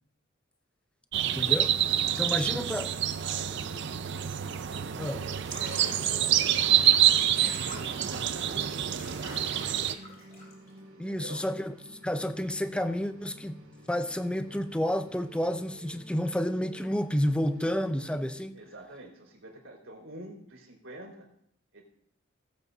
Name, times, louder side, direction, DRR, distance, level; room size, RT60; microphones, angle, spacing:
sound 1, 1.1-10.0, right 10 dB, 55° right, 0.5 m, -27 dB
voice 1, 1.2-1.8 2.2-2.9 5.0-5.3 11.0-13.6 13.9-18.6, equal, 5° left, 0.4 m, -30 dB
sound 2, 1.2-18.3, right 1 dB, 90° right, 2.2 m, -52 dB
voice 2, 2.0-4.3 4.9-8.8 10.9-11.4 18.5-21.3 21.7-21.8, right 1 dB, 70° right, 3.7 m, -48 dB
Water / Bathtub (filling or washing), 5.4-10.8, left 2 dB, 45° left, 5.6 m, -47 dB
19.0 x 8.2 x 2.7 m
head